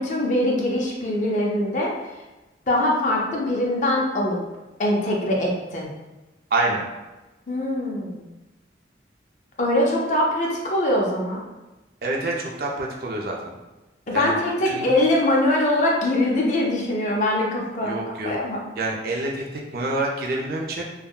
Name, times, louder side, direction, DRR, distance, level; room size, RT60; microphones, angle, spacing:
voice 1, 0.0-1.9 2.7-4.4 4.8-5.9 7.5-8.2 9.6-11.4 14.1-18.0 18.2-18.6, left 1 dB, 40° left, -2 dB, 0.5 m, -22 dB
voice 2, 6.5-6.9 12.0-13.6 14.1-14.4 14.7-14.9 17.8-18.4 18.8-20.8, right 2 dB, 55° right, -1 dB, 0.4 m, -27 dB
3.4 x 2.1 x 2.2 m, 1.1 s
head